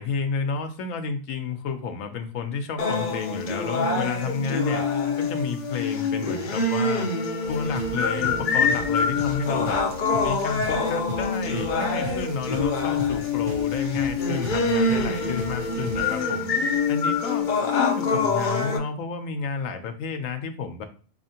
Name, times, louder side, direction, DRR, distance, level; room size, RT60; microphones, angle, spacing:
voice 1, 0.0-4.9 5.2-7.1 7.5-9.8 10.2-16.5 16.9-20.8, left 5 dB, 80° left, 7 dB, 1.0 m, -31 dB
sound 1, 2.8-18.8, left 4 dB, 50° left, 0.6 m, -25 dB
sound 2, 7.4-16.2, left 1 dB, 70° right, 1.1 m, -38 dB
4.2 x 2.8 x 2.8 m, 0.41 s
omnidirectional pair, 1.4 m